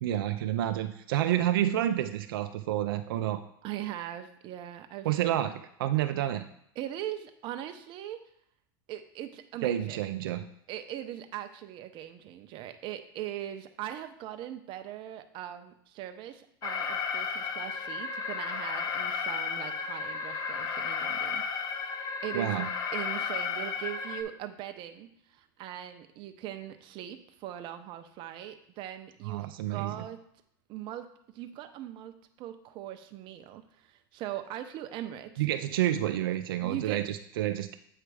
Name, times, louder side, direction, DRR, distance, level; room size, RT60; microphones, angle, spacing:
voice 1, 0.0-3.4 5.0-6.5 9.6-10.4 22.3-22.7 29.2-30.0 35.4-37.8, right 12 dB, 85° right, 8 dB, 0.4 m, -29 dB
voice 2, 3.6-5.1 6.8-8.2 8.9-10.0 10.7-21.4 21.8-21.9 22.2-22.6 22.9-30.2 30.7-31.1 31.3-35.4 36.6-37.0, right 12 dB, 45° right, 8 dB, 0.7 m, -40 dB
Alarm, 16.6-24.2, left 6 dB, 35° left, 0.7 m, -33 dB
8.0 x 3.3 x 4.8 m, 0.72 s
supercardioid pair, 120°, 11 cm